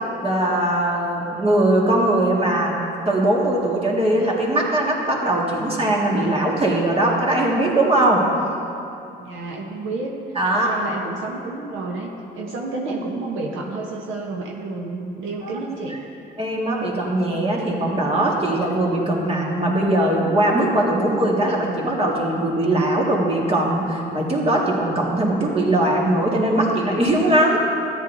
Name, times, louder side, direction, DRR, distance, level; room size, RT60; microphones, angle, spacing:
voice 1, 0.2-2.8 3.1-8.3 10.4-10.7 15.4-15.5 16.4-27.6, right 1 dB, 30° right, -2 dB, 1.9 m, -20 dB
voice 2, 9.1-10.1 10.5-16.0, right 3 dB, 90° right, 0 dB, 1.0 m, -30 dB
13.5 x 10.5 x 2.7 m, 2.7 s
cardioid pair, 90°, 20 cm